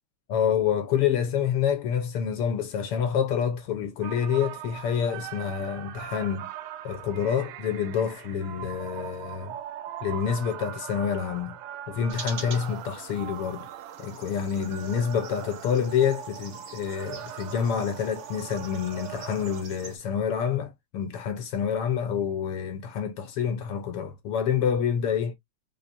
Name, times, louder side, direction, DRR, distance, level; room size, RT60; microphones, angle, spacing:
voice 1, 0.3-6.5 6.8-9.6 10.0-11.6 11.9-13.7 14.0-25.3, left 8 dB, 70° left, 1.4 m, -27 dB
sound 1, 4.0-19.6, right 11 dB, 85° right, 2.2 m, -41 dB
sound 2, 12.1-20.0, right 5 dB, 70° right, 0.8 m, -45 dB
5.8 x 3.3 x 2.6 m
omnidirectional pair, 3.5 m